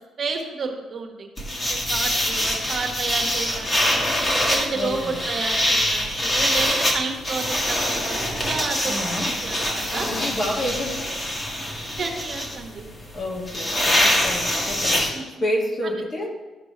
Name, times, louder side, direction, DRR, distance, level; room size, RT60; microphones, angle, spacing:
voice 1, 0.2-1.3 1.6-4.0 4.5-10.1 12.0-12.9 15.1-15.2, right 4 dB, 50° right, 2 dB, 1.4 m, -31 dB
sound 1, 1.4-15.1, equal, 30° left, 2.2 m, -24 dB
voice 2, 4.7-5.3 8.9-9.3 9.9-11.1 13.1-15.1 15.4-16.3, left 1 dB, 45° left, -2 dB, 2.3 m, -29 dB
13.5 x 5.2 x 3.3 m, 1.2 s
cardioid pair, 90°, 0 cm